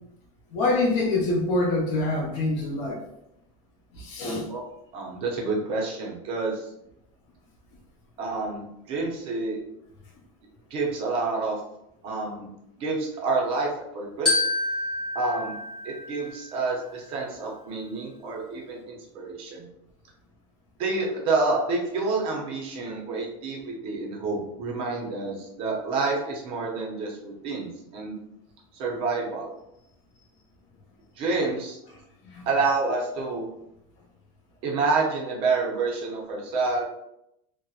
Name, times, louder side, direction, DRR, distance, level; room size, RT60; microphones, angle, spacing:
voice 1, 0.5-3.0 3.9-4.5 32.3-32.4, left 2 dB, 50° left, -2 dB, 0.8 m, -25 dB
voice 2, 4.9-6.7 8.2-9.6 10.7-11.6 12.0-12.5 12.8-14.5 15.1-15.6 15.8-19.7 20.8-28.2 28.7-29.5 31.2-31.8 32.4-33.4 34.6-36.9, right 3 dB, 30° right, -1 dB, 0.5 m, -28 dB
Glockenspiel, 14.3-16.7, left 2 dB, 5° left, 0.9 m, -28 dB
2.6 x 2.1 x 2.3 m, 0.82 s
supercardioid pair, 175°, 17 cm